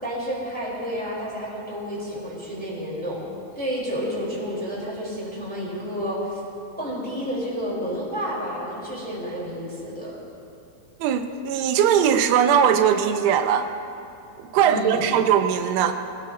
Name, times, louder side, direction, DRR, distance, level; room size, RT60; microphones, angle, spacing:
voice 1, 0.0-3.2 3.6-6.4 6.8-10.2 14.6-15.1, equal, ahead, -7 dB, 4.2 m, -30 dB
voice 2, 11.0-13.7 14.5-15.9, right 8 dB, 85° right, 7 dB, 2.9 m, -20 dB
24.0 x 18.0 x 3.0 m, 2.7 s
omnidirectional pair, 4.8 m